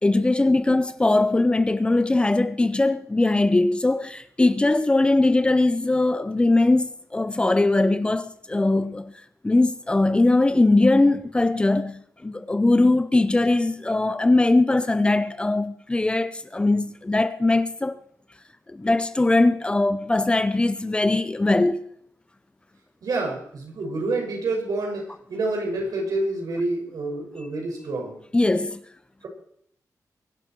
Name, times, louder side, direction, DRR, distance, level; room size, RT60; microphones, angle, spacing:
voice 1, 0.0-9.1 9.4-18.0 18.7-21.8 28.3-28.8, left 2 dB, 15° left, 0.7 m, -21 dB
voice 2, 23.0-28.2, right 2 dB, 75° right, 6.0 m, -28 dB
23.0 x 12.0 x 4.6 m
wide cardioid pair, 165°, 6 cm